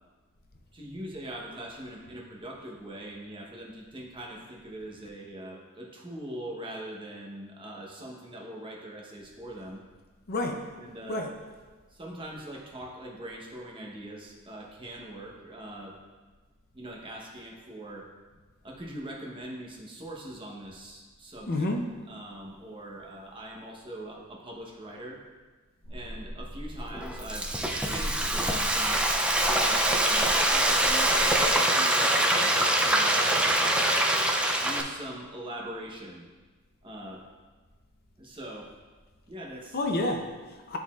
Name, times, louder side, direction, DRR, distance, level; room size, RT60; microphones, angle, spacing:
voice 1, 0.7-9.8 10.8-11.2 11.9-16.0 16.7-18.1 18.6-21.7 22.1-25.2 25.9-27.5 27.9-29.0 29.4-33.9 34.6-36.2 36.8-37.2 38.2-38.7 39.3-39.8, right 1 dB, 25° right, -1 dB, 0.9 m, -42 dB
voice 2, 10.3-10.6 11.1-11.3 21.5-21.8 39.7-40.8, left 2 dB, 45° left, 3 dB, 0.6 m, -29 dB
sound 1, 25.8-31.5, equal, 80° left, 0.9 m, -39 dB
Frying (food), 26.9-34.8, right 1 dB, 5° right, 0.3 m, -24 dB
10.5 x 4.0 x 2.4 m, 1.3 s
head